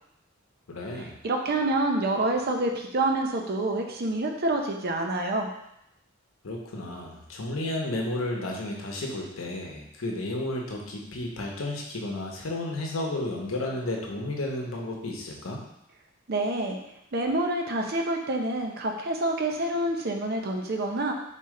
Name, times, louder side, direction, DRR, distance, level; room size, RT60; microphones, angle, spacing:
voice 1, 0.7-1.1 6.4-15.6, left 1 dB, 80° left, 0 dB, 0.9 m, -32 dB
voice 2, 1.2-5.5 16.3-16.8 17.1-21.1, right 2 dB, 50° right, 2 dB, 0.6 m, -27 dB
4.1 x 3.2 x 3.7 m, 0.80 s
head